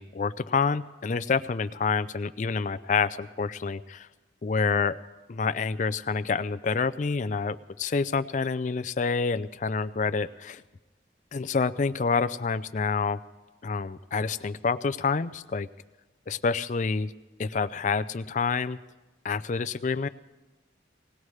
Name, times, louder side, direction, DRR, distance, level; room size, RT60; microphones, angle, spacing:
voice 1, 0.0-4.1 4.4-5.0 5.3-10.6 11.3-13.2 13.6-15.7 16.3-17.1 17.4-18.8 19.2-20.1, left 5 dB, 40° left, 13 dB, 0.4 m, -28 dB
19.0 x 18.5 x 3.2 m, 1.2 s
head